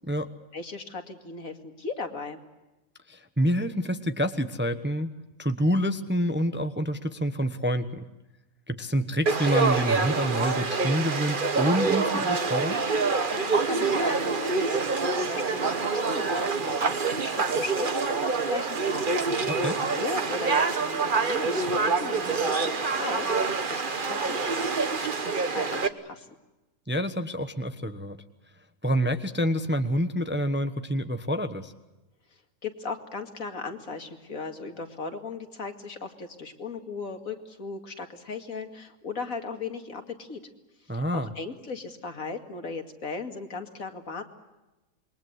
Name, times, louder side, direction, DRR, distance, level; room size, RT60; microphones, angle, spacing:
voice 1, 0.5-2.4 13.3-19.6 19.9-26.3 32.6-40.4 40.9-44.2, left 3 dB, 65° left, 6 dB, 2.7 m, -37 dB
voice 2, 3.1-5.1 5.4-8.0 8.7-12.8 19.5-19.8 26.9-28.2 28.8-31.7 40.9-41.3, equal, 10° right, 9 dB, 1.0 m, -27 dB
Conversation / Crowd, 9.3-25.9, right 4 dB, 35° right, 1.4 m, -26 dB
27.5 x 22.5 x 8.1 m, 1.0 s
omnidirectional pair, 1.5 m